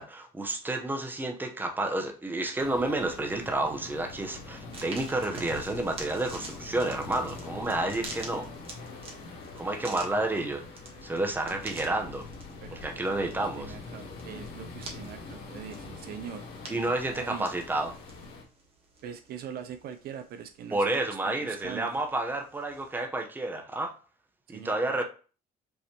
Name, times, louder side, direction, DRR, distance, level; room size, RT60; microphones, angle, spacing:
voice 1, 0.0-8.5 9.6-10.6 11.0-12.3 12.7-13.7 16.7-18.0 20.7-23.9 24.5-25.0, right 2 dB, 10° right, 0.9 m, -30 dB
sound 1, 2.6-18.4, left 3 dB, 85° left, 1.6 m, -44 dB
sound 2, 4.7-23.0, right 3 dB, 35° right, 1.3 m, -48 dB
voice 2, 11.4-11.9 12.6-13.3 13.6-17.6 19.0-22.0 24.5-24.8, right 8 dB, 65° right, 0.6 m, -43 dB
5.5 x 3.2 x 2.9 m
cardioid pair, 110°, 17 cm